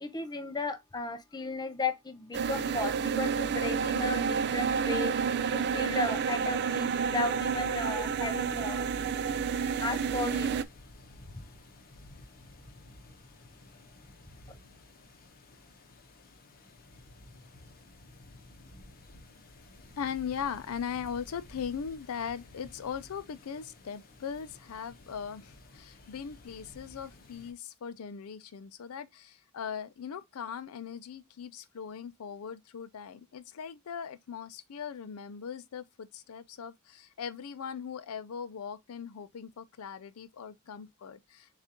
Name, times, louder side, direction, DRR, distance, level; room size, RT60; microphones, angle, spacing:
voice 1, 0.0-5.1 5.5-8.9 9.8-10.5, left 3 dB, 20° left, 0.5 m, -35 dB
sound 1, 2.3-10.6, right 6 dB, 50° right, 0.4 m, -30 dB
sound 2, 9.5-27.5, left 2 dB, 45° left, 0.9 m, -53 dB
voice 2, 20.0-41.5, left 7 dB, 75° left, 0.4 m, -39 dB
6.9 x 2.4 x 2.9 m
head